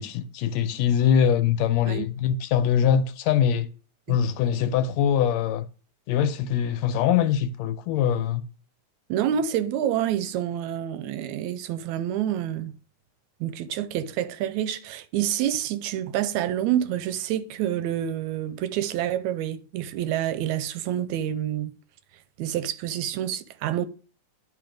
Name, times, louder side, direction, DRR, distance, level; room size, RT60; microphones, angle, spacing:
voice 1, 0.0-3.7 4.1-5.7 6.1-8.4, left 8 dB, 80° left, 1.7 m, -23 dB
voice 2, 9.1-12.8 13.4-21.7 22.4-23.9, right 11 dB, 85° right, 2.0 m, -28 dB
10.5 x 3.8 x 5.0 m
omnidirectional pair, 3.3 m